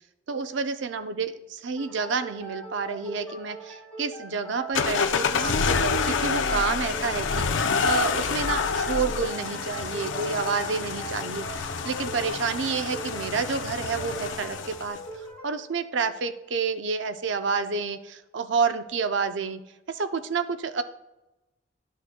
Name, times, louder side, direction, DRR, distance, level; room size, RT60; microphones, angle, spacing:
voice 1, 0.3-15.0 15.4-19.6 19.9-20.8, right 5 dB, 70° right, 9 dB, 0.6 m, -29 dB
sound 1, 1.8-17.1, right 2 dB, 10° left, 2.1 m, -42 dB
sound 2, 4.7-15.0, left 5 dB, 80° left, 0.5 m, -28 dB
11.5 x 6.5 x 2.2 m, 0.98 s
head